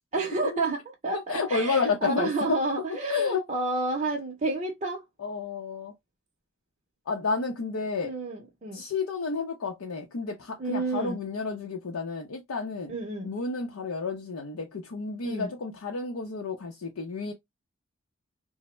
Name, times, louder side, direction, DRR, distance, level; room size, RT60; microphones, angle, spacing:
voice 1, 0.1-5.0 8.0-8.8 10.6-11.2 12.9-13.3 15.2-15.5, right 2 dB, 35° right, 0.5 m, -30 dB
voice 2, 1.1-2.3 3.1-3.4 5.2-5.9 7.1-8.1 8.7-12.9 13.2-17.3, left 4 dB, 90° left, 0.6 m, -31 dB
3.3 x 2.0 x 3.0 m
head